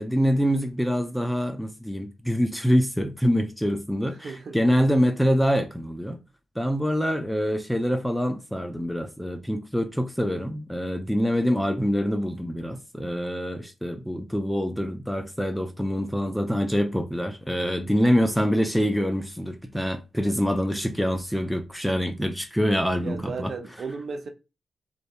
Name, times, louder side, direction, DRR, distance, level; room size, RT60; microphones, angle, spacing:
voice 1, 0.0-6.2 6.6-23.5, equal, ahead, 0.4 m, -25 dB
voice 2, 4.2-4.6 23.0-24.3, right 4 dB, 65° right, 0.4 m, -35 dB
2.6 x 2.2 x 2.3 m
supercardioid pair, 50°, 0 cm